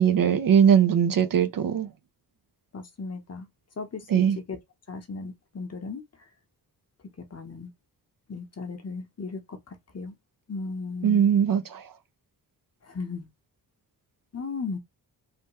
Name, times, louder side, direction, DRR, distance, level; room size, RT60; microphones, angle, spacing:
voice 1, 0.0-1.9 4.1-4.4 11.0-11.8, right 8 dB, 55° right, 0.6 m, -20 dB
voice 2, 2.7-3.5 3.8-4.6 4.9-6.0 7.3-7.7 8.3-10.1 10.5-11.2 12.9-13.3 14.3-14.8, left 4 dB, 35° left, 0.9 m, -36 dB
3.3 x 2.2 x 2.9 m
cardioid pair, 85°, 42 cm